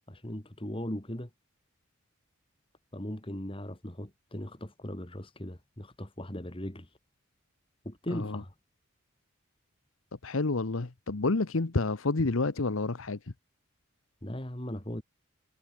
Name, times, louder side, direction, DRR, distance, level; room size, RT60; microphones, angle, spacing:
voice 1, 0.1-1.3 2.9-7.0 7.8-8.5 14.2-15.0, equal, 25° left, 2.5 m, -38 dB
voice 2, 8.1-8.4 10.2-13.3, left 3 dB, 80° left, 1.0 m, -29 dB
head